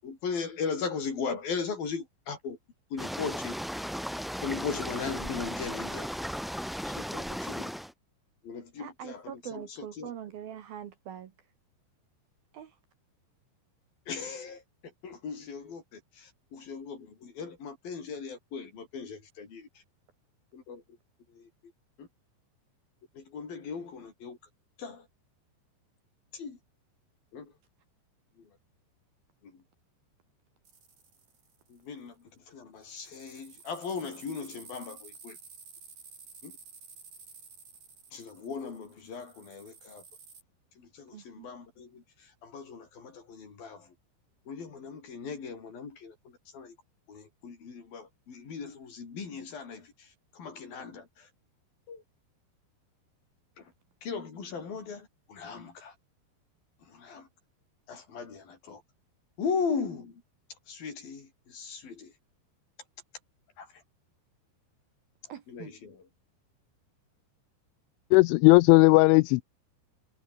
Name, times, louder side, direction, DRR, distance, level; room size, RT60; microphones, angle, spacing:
voice 1, 0.0-2.6 2.9-3.5 4.4-6.1 6.8-7.7 8.4-10.1 14.1-14.6 15.0-19.7 20.5-20.8 21.3-21.5 22.0-22.1 23.1-24.4 24.8-25.1 26.3-26.6 27.3-27.5 29.4-29.5 31.7-32.1 32.5-35.4 36.4-36.5 38.1-40.0 40.8-42.0 42.4-43.9 44.5-46.1 46.5-46.8 47.1-50.1 50.3-51.3 51.9-52.0 53.6-53.7 54.0-55.9 56.9-57.3 57.9-58.8 59.4-60.1 60.7-62.1 63.6-63.7 65.5-66.0, left 5 dB, 50° left, 6.4 m, -38 dB
sound 1, 3.0-7.9, equal, ahead, 0.8 m, -36 dB
voice 2, 8.8-11.3 12.5-12.7 41.1-41.5 65.3-65.7, right 10 dB, 60° right, 2.9 m, -43 dB
sound 2, 30.7-31.8 32.8-40.4, right 5 dB, 40° right, 6.3 m, -52 dB
voice 3, 68.1-69.4, left 24 dB, 85° left, 2.9 m, -17 dB
omnidirectional pair, 5.5 m